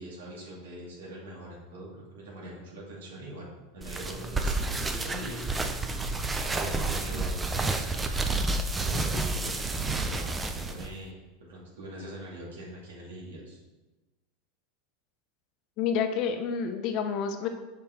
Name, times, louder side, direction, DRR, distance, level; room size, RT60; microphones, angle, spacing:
voice 1, 0.0-5.6 6.5-8.5 8.8-11.1 11.5-13.6, right 1 dB, 90° right, -4 dB, 2.2 m, -43 dB
sound 1, 3.8-10.9, right 2 dB, 15° right, 0.5 m, -30 dB
voice 2, 15.8-17.5, left 6 dB, 50° left, 6 dB, 0.9 m, -29 dB
5.7 x 5.2 x 4.3 m, 1.1 s
supercardioid pair, 120°, 0 cm